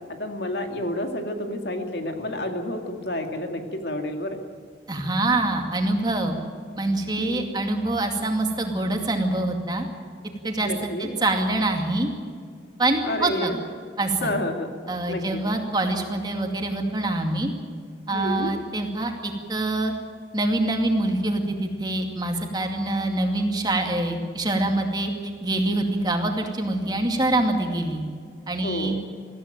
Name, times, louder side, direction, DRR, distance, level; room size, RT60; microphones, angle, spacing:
voice 1, 0.1-4.4 7.2-7.6 10.6-11.1 13.1-13.6 14.2-14.7 15.1-15.4 18.1-18.5 28.6-28.9, left 1 dB, 65° left, 4 dB, 2.3 m, -30 dB
voice 2, 4.9-6.3 6.8-9.9 10.4-10.7 11.0-12.1 12.8-13.5 14.0-14.3 14.9-17.5 18.1-19.9 20.3-28.0 28.5-29.0, right 2 dB, 25° right, 3 dB, 2.4 m, -25 dB
21.5 x 15.0 x 9.1 m, 2.1 s
head